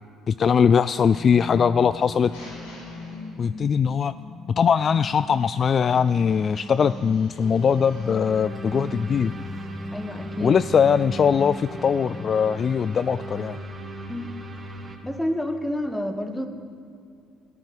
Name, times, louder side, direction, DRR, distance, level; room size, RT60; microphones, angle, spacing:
voice 1, 0.3-2.3 3.4-4.1 4.6-9.3 10.4-13.6, left 7 dB, 45° left, 15 dB, 0.3 m, -21 dB
sound 1, 1.1-13.1, left 2 dB, 25° left, 2.8 m, -39 dB
sound 2, 1.8-3.8 5.3-8.3, left 2 dB, 80° left, 5.0 m, -49 dB
sound 3, 7.4-15.0, right 2 dB, 30° right, 2.4 m, -38 dB
voice 2, 9.9-10.6 14.1-14.4 15.0-16.5, left 1 dB, 5° left, 7 dB, 1.7 m, -29 dB
14.0 x 13.0 x 7.7 m, 2.3 s
hypercardioid pair, 60°, 0 cm